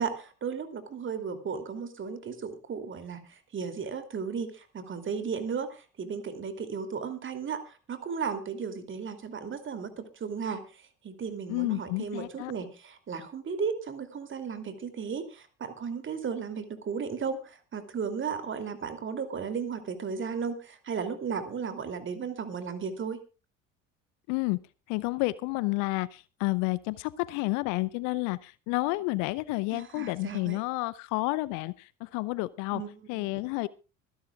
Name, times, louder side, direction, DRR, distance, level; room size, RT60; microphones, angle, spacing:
voice 1, 0.0-10.6 11.0-23.2 29.7-30.6 32.7-33.4, right 6 dB, 30° right, 8 dB, 2.9 m, -35 dB
voice 2, 11.5-12.5 24.3-24.6 24.9-32.8 33.1-33.7, left 22 dB, 50° left, 20 dB, 0.7 m, -30 dB
25.0 x 11.0 x 2.4 m, 0.32 s
figure-of-eight pair, 65°, 38 cm